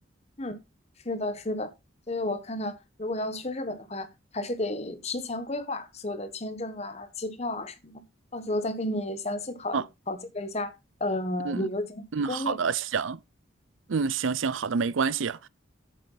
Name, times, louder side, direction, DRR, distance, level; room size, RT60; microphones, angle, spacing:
voice 1, 1.0-1.7 2.1-4.1 4.3-8.0 8.3-10.7 11.0-12.6, left 1 dB, 35° left, 1.2 m, -32 dB
voice 2, 12.1-13.2 13.9-15.5, right 5 dB, 80° right, 0.5 m, -28 dB
8.6 x 7.7 x 4.0 m
head